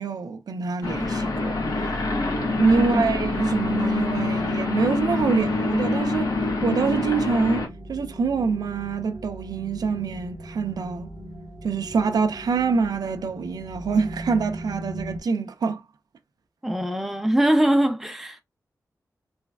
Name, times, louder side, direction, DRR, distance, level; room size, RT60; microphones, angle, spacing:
voice 1, 0.0-1.6 2.5-6.3 6.6-11.1 11.6-15.8, right 5 dB, 80° right, 0.4 m, -25 dB
sound 1, 0.8-7.7, left 3 dB, 70° left, 1.0 m, -25 dB
sound 2, 3.0-15.2, equal, 50° left, 1.2 m, -40 dB
voice 2, 16.6-18.4, right 1 dB, 5° right, 0.5 m, -22 dB
3.2 x 3.1 x 2.3 m
wide cardioid pair, 110°, 7 cm